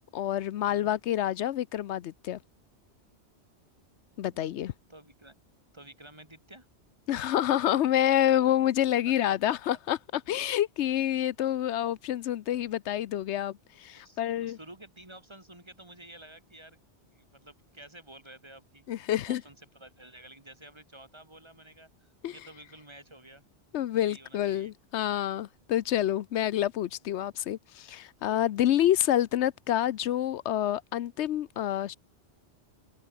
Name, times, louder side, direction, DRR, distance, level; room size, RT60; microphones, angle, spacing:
voice 1, 0.1-2.4 4.2-4.7 7.1-14.6 18.9-19.4 22.2-22.3 23.7-32.0, left 12 dB, 80° left, 0.9 m, -28 dB
voice 2, 0.7-1.0 4.3-5.4 5.7-6.7 9.3-9.4 9.7-9.8 14.0-16.8 17.1-18.8 19.3-23.4 23.9-24.7, right 1 dB, 25° right, 2.8 m, -51 dB
omnidirectional pair, 1.1 m